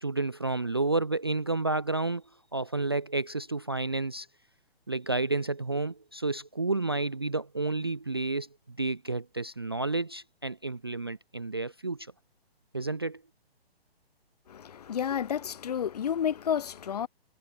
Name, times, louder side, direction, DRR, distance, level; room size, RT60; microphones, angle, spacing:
voice 1, 0.0-2.2 2.5-4.3 4.9-12.1 12.7-13.2, right 3 dB, 25° right, 0.4 m, -30 dB
voice 2, 14.5-17.1, left 8 dB, 40° left, 1.3 m, -31 dB
hypercardioid pair, 175°, 31 cm